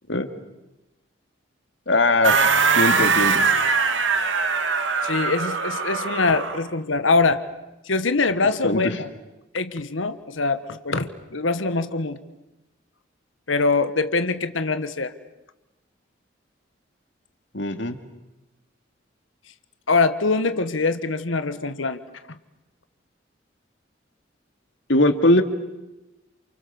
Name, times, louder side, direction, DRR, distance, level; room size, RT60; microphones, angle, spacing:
voice 1, 1.9-2.4 2.8-3.4 8.6-8.8 17.5-18.0 24.9-25.4, left 2 dB, 70° left, 7 dB, 2.4 m, -20 dB
sound 1, 2.2-6.6, right 5 dB, 75° right, 2.3 m, -21 dB
voice 2, 5.0-7.4 7.9-9.1 9.5-12.2 13.5-15.1 19.9-22.0, left 3 dB, 85° left, 11 dB, 1.5 m, -23 dB
29.0 x 28.5 x 7.0 m, 0.98 s
head